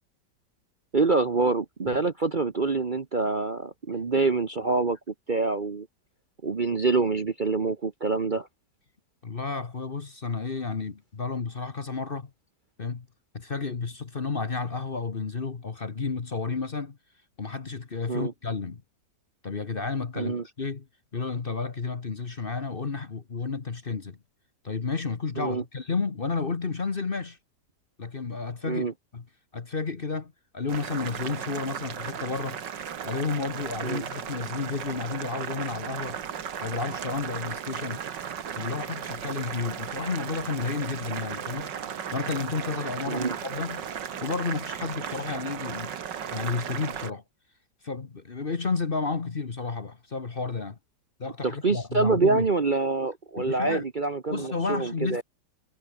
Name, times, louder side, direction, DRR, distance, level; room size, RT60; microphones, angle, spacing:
voice 1, 0.9-5.9 6.4-8.5 18.1-18.3 20.2-20.4 25.4-25.6 28.6-28.9 33.8-34.1 43.1-43.4 51.4-55.2, right 3 dB, 35° right, 1.0 m, -26 dB
voice 2, 9.2-12.3 12.8-13.1 13.3-17.0 17.4-18.8 19.4-20.9 21.1-24.2 24.6-27.4 28.0-28.9 29.1-29.2 29.5-32.6 33.0-36.2 36.6-38.0 38.5-41.7 42.1-43.9 44.2-45.9 46.3-47.2 47.8-50.8 51.2-52.4 53.4-53.8 54.3-55.2, left 4 dB, 35° left, 1.3 m, -31 dB
Boiling, 30.7-47.1, right 8 dB, 85° right, 2.2 m, -36 dB
omnidirectional pair, 1.9 m